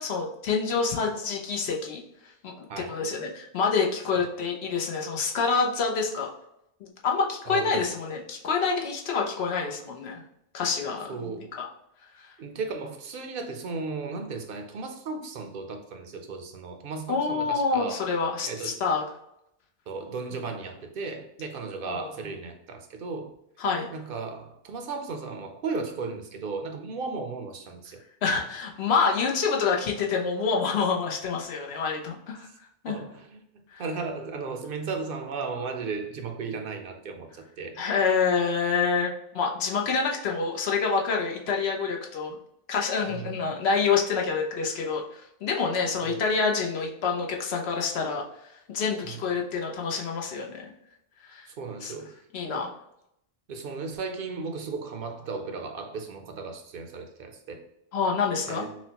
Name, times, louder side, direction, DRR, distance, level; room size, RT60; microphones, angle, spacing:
voice 1, 0.0-2.0 2.4-6.3 6.8-10.2 10.5-11.7 17.1-19.0 21.8-22.1 23.6-23.9 28.2-32.5 32.8-33.0 33.7-33.8 37.8-42.4 42.7-48.2 48.7-50.7 51.2-51.5 51.8-51.9 52.3-52.8 57.9-58.7, left 5 dB, 85° left, 1 dB, 1.0 m, -27 dB
voice 2, 2.7-3.0 7.5-7.9 11.1-11.5 12.4-18.0 18.5-18.8 19.9-23.3 23.9-28.0 32.9-33.5 33.8-37.8 43.1-43.3 46.0-46.2 49.0-49.2 51.5-52.2 52.5-52.6 53.5-57.6 58.5-58.8, right 4 dB, 65° right, 4 dB, 0.7 m, -35 dB
5.9 x 2.1 x 2.8 m, 0.78 s
omnidirectional pair, 1.0 m